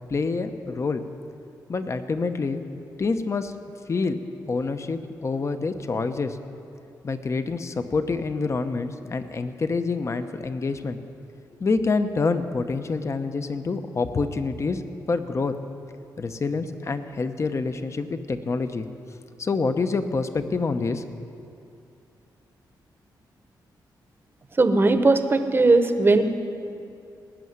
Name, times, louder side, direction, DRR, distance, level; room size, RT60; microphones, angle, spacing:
voice 1, 0.1-1.0 1.7-2.6 3.0-3.5 3.9-4.2 4.5-6.4 7.0-11.0 11.6-14.8 15.1-15.5 16.2-18.9 19.4-21.0, left 4 dB, 40° left, 9 dB, 0.8 m, -27 dB
voice 2, 24.6-26.2, right 3 dB, 30° right, 8 dB, 1.0 m, -18 dB
19.0 x 6.4 x 9.5 m, 2.6 s
cardioid pair, 95°, 8 cm